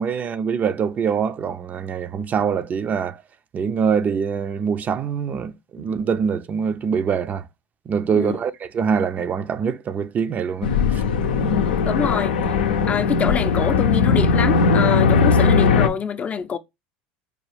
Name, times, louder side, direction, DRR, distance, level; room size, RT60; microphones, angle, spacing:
voice 1, 0.0-3.2 3.5-7.4 7.9-11.0, right 6 dB, 35° right, 0.4 m, -24 dB
sound 1, 10.6-15.9, left 5 dB, 85° left, 0.5 m, -19 dB
voice 2, 11.4-12.4 12.9-16.6, left 7 dB, 30° left, 0.4 m, -25 dB
4.8 x 2.4 x 3.1 m
hypercardioid pair, 90°, 5 cm